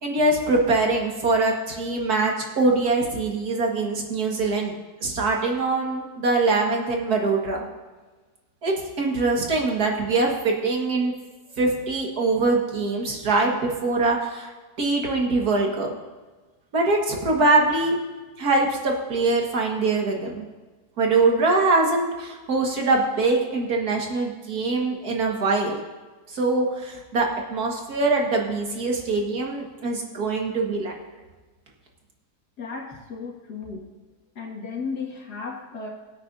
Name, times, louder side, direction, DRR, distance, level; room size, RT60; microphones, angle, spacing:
voice 1, 0.0-4.8 5.0-7.7 8.6-11.1 11.6-14.5 14.8-15.9 16.7-18.0 18.4-20.5 21.0-25.8 26.3-30.9, right 3 dB, 70° right, 0 dB, 2.2 m, -23 dB
voice 2, 32.6-33.9 34.4-35.9, left 4 dB, 80° left, -1 dB, 2.6 m, -34 dB
22.5 x 8.8 x 2.7 m, 1.3 s
omnidirectional pair, 1.7 m